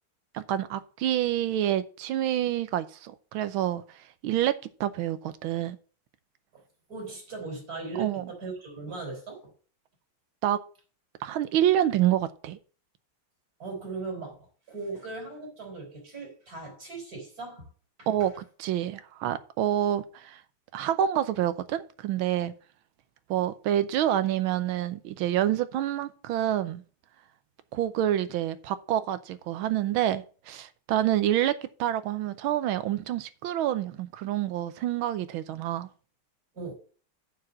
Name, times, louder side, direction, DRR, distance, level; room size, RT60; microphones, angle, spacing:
voice 1, 0.3-3.8 4.2-4.5 4.8-5.8 8.0-8.3 10.4-10.6 11.2-12.6 18.1-18.3 18.6-20.4 20.7-22.5 23.3-26.8 27.7-35.9, right 11 dB, 80° right, 1.5 m, -27 dB
voice 2, 6.9-9.5 13.6-17.7 18.0-18.3 36.5-36.7, right 3 dB, 45° right, 4.2 m, -38 dB
7.7 x 4.8 x 7.3 m
omnidirectional pair, 2.3 m